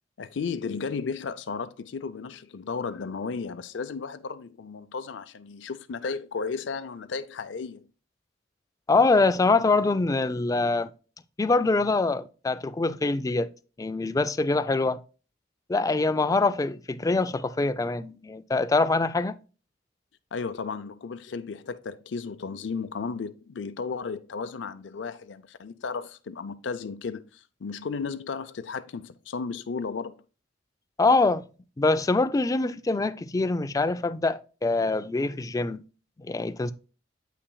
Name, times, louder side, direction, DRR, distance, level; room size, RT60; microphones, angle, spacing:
voice 1, 0.2-7.9 20.3-30.2, left 5 dB, 80° left, 0.5 m, -34 dB
voice 2, 8.9-10.9 11.4-13.5 13.8-15.0 15.7-19.4 31.0-31.5 31.8-35.8 36.2-36.7, left 3 dB, 20° left, 0.3 m, -24 dB
8.1 x 5.8 x 2.2 m
head